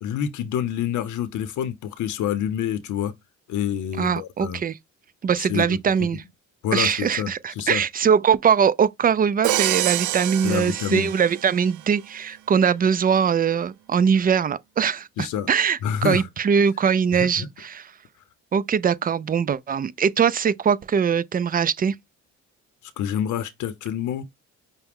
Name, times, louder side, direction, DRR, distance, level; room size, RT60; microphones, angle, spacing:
voice 1, 0.0-3.1 3.5-4.6 5.4-5.8 6.6-7.3 7.6-7.8 10.4-11.1 15.2-15.5 15.8-16.3 17.2-17.3 23.0-24.2, left 9 dB, 75° left, 0.7 m, -27 dB
voice 2, 4.0-4.8 5.2-6.2 6.7-17.9 18.5-21.9, right 7 dB, 30° right, 0.4 m, -21 dB
Crash cymbal, 9.4-11.7, right 14 dB, 80° right, 0.5 m, -26 dB
5.7 x 2.1 x 3.5 m
cardioid pair, 90°, 30 cm